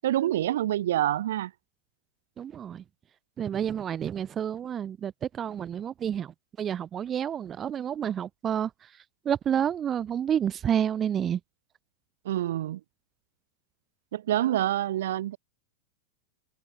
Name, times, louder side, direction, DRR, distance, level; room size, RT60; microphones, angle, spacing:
voice 1, 0.0-1.5 12.2-12.8 14.1-15.4, right 13 dB, 60° right, 0.8 m, -27 dB
voice 2, 2.4-2.8 3.4-6.3 6.6-8.7 9.3-11.4, right 9 dB, 25° right, 0.5 m, -29 dB
figure-of-eight pair, 90°, 0 cm